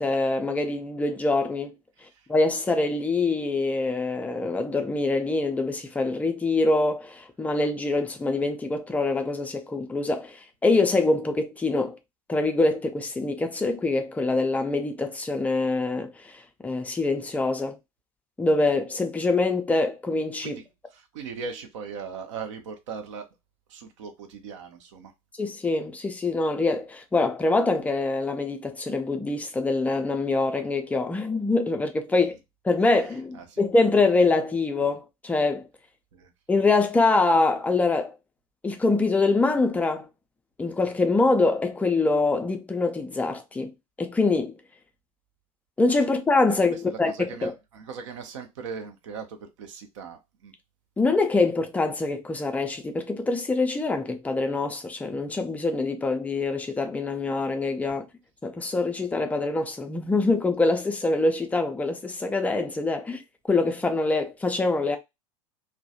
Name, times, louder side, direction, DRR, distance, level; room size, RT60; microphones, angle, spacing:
voice 1, 0.0-1.8 2.3-12.0 12.3-17.8 18.4-20.6 25.4-32.4 32.6-35.7 36.5-38.1 38.6-40.1 40.6-43.7 44.0-44.6 45.8-47.5 51.0-58.1 58.4-63.2 63.5-65.0, left 3 dB, 10° left, 0.4 m, -24 dB
voice 2, 20.9-23.3 23.7-25.1 32.2-32.3 33.3-33.6 36.1-36.3 46.5-50.5, right 5 dB, 60° right, 0.6 m, -39 dB
2.3 x 2.1 x 2.6 m
figure-of-eight pair, 80°, 18 cm